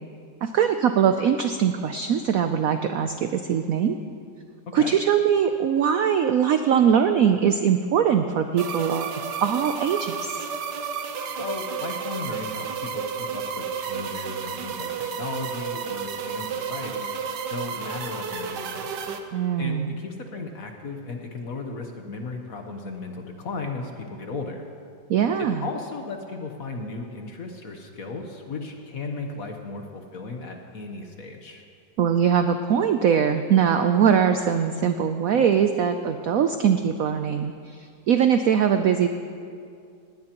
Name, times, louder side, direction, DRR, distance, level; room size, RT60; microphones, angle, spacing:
voice 1, 0.4-4.0 4.7-9.1 9.4-10.4 19.3-20.0 25.1-25.7 32.0-39.1, right 8 dB, 85° right, 7 dB, 0.7 m, -22 dB
sound 1, 8.6-19.2, right 6 dB, 65° right, 1.4 m, -32 dB
voice 2, 11.4-17.1 17.5-19.2 19.6-24.6 25.4-31.6, left 3 dB, 55° left, 3 dB, 1.3 m, -36 dB
19.5 x 17.5 x 3.0 m, 2.3 s
omnidirectional pair, 2.1 m